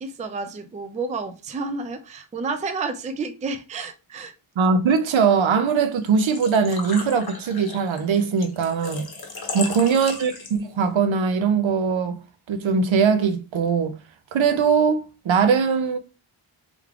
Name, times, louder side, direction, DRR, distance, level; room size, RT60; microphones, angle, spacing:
voice 1, 0.0-4.3 9.6-10.1, right 4 dB, 15° right, 0.3 m, -31 dB
voice 2, 4.6-9.0 9.5-12.2 12.5-13.9 14.3-16.0, right 5 dB, 65° right, 0.6 m, -21 dB
Engine / Trickle dribble / Fill (with liquid), 6.0-10.8, left 4 dB, 50° left, 0.9 m, -36 dB
3.4 x 3.3 x 2.3 m
wide cardioid pair, 115°, 50 cm